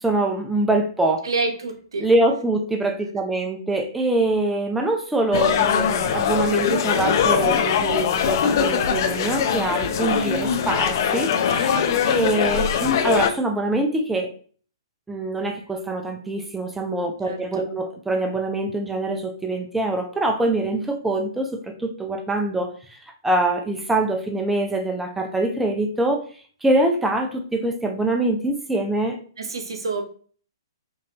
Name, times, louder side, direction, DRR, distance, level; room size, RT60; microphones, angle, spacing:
voice 1, 0.0-1.3 2.0-14.3 15.1-22.7 23.2-26.2 26.6-29.2, right 2 dB, 5° right, 4 dB, 0.5 m, -24 dB
voice 2, 1.2-2.1 17.3-17.7 29.4-30.0, right 3 dB, 75° right, 5 dB, 1.0 m, -28 dB
sound 1, 5.3-13.3, left 7 dB, 50° left, 0.6 m, -21 dB
5.3 x 2.6 x 2.8 m, 0.44 s
hypercardioid pair, 130°, 2 cm